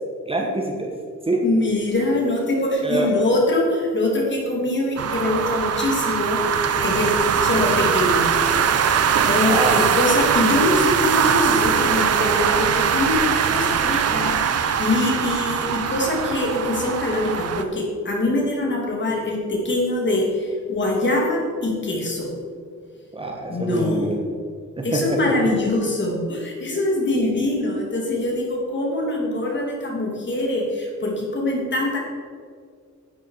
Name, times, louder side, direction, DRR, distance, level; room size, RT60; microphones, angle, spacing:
voice 1, 0.3-0.9 1.3-1.4 2.8-3.1 9.5-9.9 10.4-10.5 23.1-24.1 24.8-25.3, right 2 dB, 20° right, 0 dB, 1.3 m, -25 dB
voice 2, 1.4-8.3 9.2-22.3 23.5-24.1 24.8-32.0, left 2 dB, 40° left, -1 dB, 2.9 m, -23 dB
sound 1, 5.0-17.6, right 7 dB, 55° right, 0.8 m, -21 dB
11.0 x 8.9 x 4.8 m, 2.1 s
wide cardioid pair, 125°, 29 cm